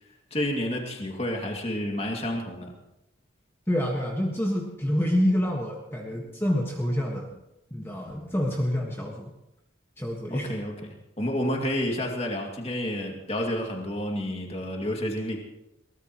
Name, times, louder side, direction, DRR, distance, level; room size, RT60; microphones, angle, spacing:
voice 1, 0.3-2.7 10.3-15.4, left 1 dB, 30° left, 1 dB, 2.4 m, -30 dB
voice 2, 3.7-7.4 7.7-9.3 10.0-10.5, equal, 10° left, -1 dB, 1.6 m, -27 dB
22.0 x 18.5 x 3.1 m, 0.88 s
head